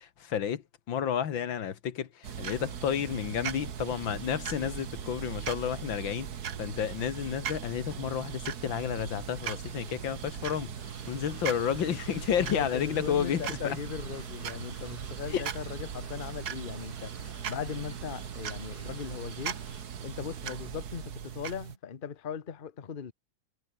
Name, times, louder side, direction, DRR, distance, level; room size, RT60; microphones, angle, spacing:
voice 1, 0.0-6.3 6.6-13.8 15.3-15.4, left 8 dB, 85° left, 2.2 m, -31 dB
sound 1, 2.2-21.8, right 8 dB, 55° right, 1.8 m, -39 dB
sound 2, 2.7-13.5, right 2 dB, 85° right, 8.2 m, -57 dB
sound 3, 10.8-19.9, equal, 5° left, 7.0 m, -54 dB
voice 2, 12.4-19.6 20.0-23.1, left 7 dB, 35° left, 1.0 m, -38 dB
omnidirectional pair, 2.1 m